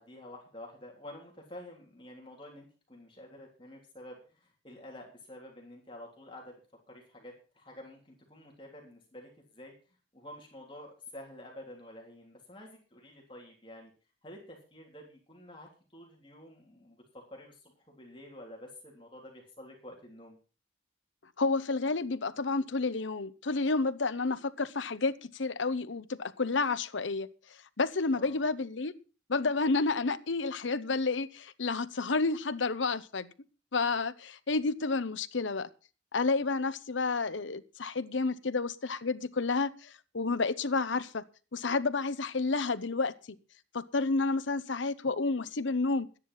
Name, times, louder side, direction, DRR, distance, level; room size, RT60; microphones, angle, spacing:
voice 1, 0.0-6.6 6.9-9.7 10.1-13.9 14.2-20.4 28.1-28.4, left 1 dB, 25° left, 3.4 m, -49 dB
voice 2, 21.4-27.3 27.8-28.9 29.3-33.3 33.7-35.7 36.1-41.2 41.5-43.1 43.7-46.1, left 3 dB, 75° left, 0.9 m, -30 dB
13.0 x 10.0 x 5.6 m
head